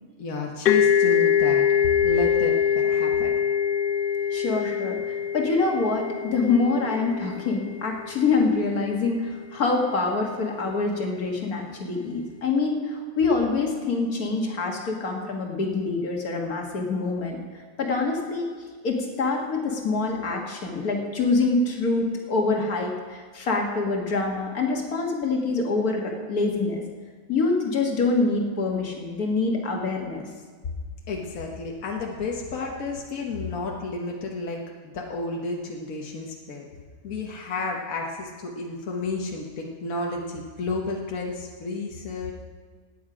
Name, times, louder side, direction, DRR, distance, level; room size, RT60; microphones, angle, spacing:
voice 1, 0.2-1.6 2.0-3.3 31.1-36.6 37.0-42.3, left 3 dB, 70° left, 0 dB, 1.6 m, -31 dB
sound 1, 0.7-8.2, left 8 dB, 55° left, 0.6 m, -23 dB
voice 2, 4.3-17.4 17.8-18.5 18.8-26.8 27.3-30.3, left 3 dB, 90° left, 1 dB, 2.2 m, -25 dB
17.0 x 9.3 x 5.0 m, 1.5 s
omnidirectional pair, 1.5 m